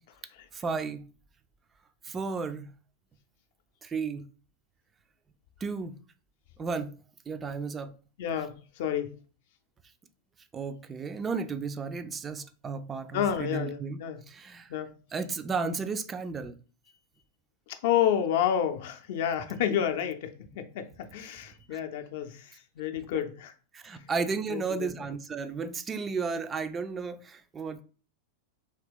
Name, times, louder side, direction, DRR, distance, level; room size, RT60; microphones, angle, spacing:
voice 1, 0.5-1.0 2.0-2.7 3.8-4.3 5.6-6.0 6.6-6.9 7.3-7.9 10.5-14.7 15.1-16.5 21.7-21.8 23.1-23.2 23.7-27.8, right 5 dB, 20° right, 0.3 m, -33 dB
voice 2, 8.2-9.1 13.1-14.2 14.7-14.9 17.7-23.5 24.5-24.9, left 9 dB, 50° left, 0.5 m, -30 dB
2.8 x 2.8 x 3.4 m
figure-of-eight pair, 90°, 0 cm